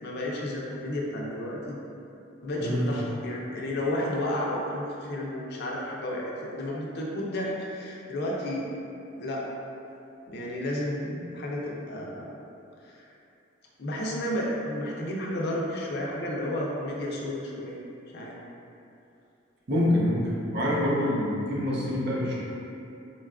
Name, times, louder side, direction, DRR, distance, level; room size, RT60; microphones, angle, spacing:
voice 1, 0.0-1.8 2.4-8.7 9.2-9.5 10.3-12.3 12.8-13.0 13.8-17.8 18.1-18.4, left 1 dB, 55° left, -3 dB, 0.5 m, -32 dB
voice 2, 19.7-22.3, left 1 dB, 55° right, -5 dB, 0.6 m, -26 dB
4.1 x 2.2 x 2.3 m, 2.7 s
head